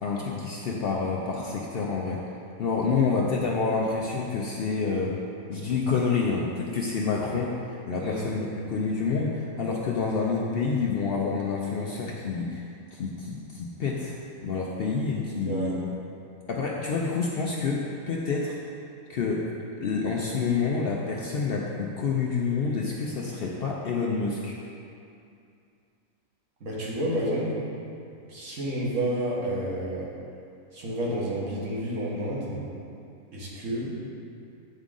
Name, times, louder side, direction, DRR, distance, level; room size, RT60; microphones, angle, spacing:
voice 1, 0.0-2.2 2.6-5.2 5.5-7.5 7.9-14.1 14.4-15.8 16.5-18.6 19.1-19.5 19.8-24.6, left 4 dB, 70° left, -2 dB, 0.5 m, -28 dB
voice 2, 26.6-27.6 28.3-30.1 30.7-32.6 33.3-33.9, right 1 dB, 60° right, -6 dB, 1.6 m, -30 dB
8.9 x 3.7 x 3.7 m, 2.5 s
omnidirectional pair, 1.5 m